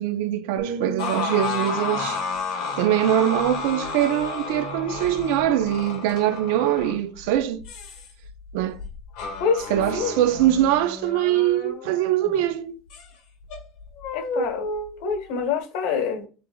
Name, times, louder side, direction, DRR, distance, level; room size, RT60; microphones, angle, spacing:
voice 1, 0.0-2.2 2.8-7.7 8.5-8.8 9.7-12.8, right 12 dB, 85° right, 0.5 m, -23 dB
sound 1, 0.6-4.5 5.0-5.2, right 5 dB, 70° right, 1.0 m, -39 dB
sound 2, 1.0-12.5 12.9-13.0 13.5-15.4, left 4 dB, 60° left, 1.4 m, -32 dB
voice 2, 14.1-14.6 15.0-16.3, left 6 dB, 80° left, 1.5 m, -25 dB
6.8 x 3.4 x 2.3 m
cardioid pair, 165°, 0 cm